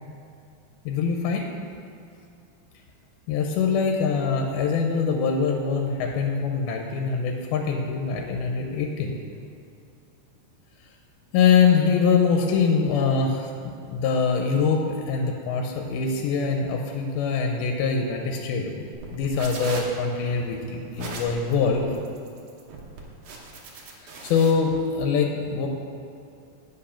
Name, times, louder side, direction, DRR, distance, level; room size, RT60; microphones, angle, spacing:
voice 1, 0.9-1.4 3.3-9.2 11.3-18.9 19.1-21.9 24.2-25.7, left 5 dB, 85° left, 2 dB, 2.6 m, -23 dB
sound 1, 18.9-24.5, right 3 dB, 70° right, 1.4 m, -38 dB
8.8 x 5.6 x 5.6 m, 2.6 s
omnidirectional pair, 4.3 m